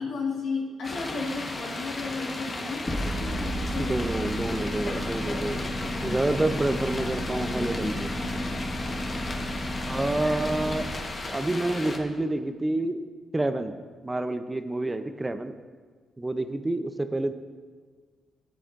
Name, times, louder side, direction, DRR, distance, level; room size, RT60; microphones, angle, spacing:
voice 1, 0.0-4.7 5.3-5.5 5.9-9.1, left 3 dB, 75° left, -2 dB, 1.7 m, -35 dB
sound 1, 0.8-12.0, left 2 dB, 40° left, 1.2 m, -35 dB
sound 2, 2.9-10.9, equal, 20° left, 1.6 m, -33 dB
voice 2, 3.8-5.7 6.0-8.1 9.9-10.9 11.3-13.0 13.3-13.7 14.0-15.6 16.2-17.3, right 2 dB, 20° right, 9 dB, 0.6 m, -28 dB
12.5 x 8.4 x 2.6 m, 1.6 s
supercardioid pair, 50°, 0 cm